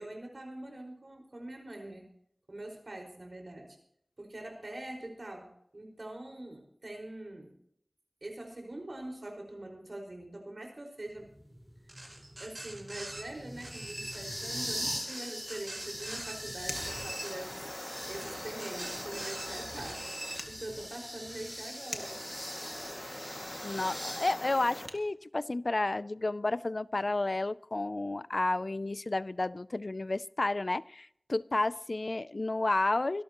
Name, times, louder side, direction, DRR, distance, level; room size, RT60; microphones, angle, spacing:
voice 1, 0.0-2.1 2.5-3.8 4.2-7.6 8.2-11.3 12.4-22.2, right 1 dB, 65° right, 5.1 m, -44 dB
sound 1, 11.2-24.3, equal, 5° right, 4.7 m, -42 dB
sound 2, 11.9-13.2 13.6-14.2 15.0-16.4 16.7-17.3 18.1-19.5 19.8-20.4, right 1 dB, 50° right, 4.2 m, -43 dB
sound 3, 16.3-25.0, left 1 dB, 35° left, 2.0 m, -43 dB
voice 2, 23.6-33.2, left 2 dB, 60° left, 0.4 m, -31 dB
24.5 x 12.5 x 3.0 m
wide cardioid pair, 55°, 0 cm